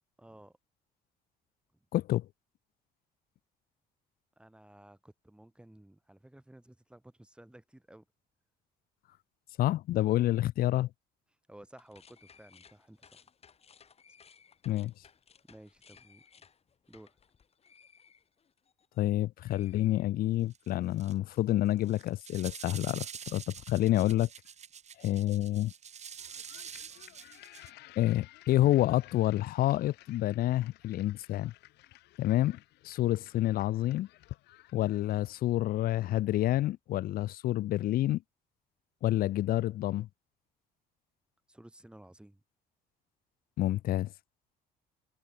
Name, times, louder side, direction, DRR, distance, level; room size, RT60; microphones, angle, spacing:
voice 1, 0.2-0.5 4.4-8.1 11.5-13.2 15.5-16.5 16.9-17.2 41.5-42.4, right 1 dB, 5° right, 3.7 m, -55 dB
voice 2, 1.9-2.3 9.6-10.9 14.7-14.9 19.0-24.3 25.0-25.7 28.0-31.5 32.2-32.6 32.8-34.1 34.7-38.2 39.0-40.1 43.6-44.1, left 14 dB, 60° left, 0.5 m, -28 dB
sound 1, 11.7-19.1 19.4-20.6, left 6 dB, 35° left, 3.9 m, -61 dB
sound 2, 20.5-20.7 21.0-21.4 21.8-27.7, right 7 dB, 40° right, 3.1 m, -46 dB
sound 3, 26.2-35.5, left 18 dB, 85° left, 3.4 m, -54 dB
cardioid pair, 110°, 17 cm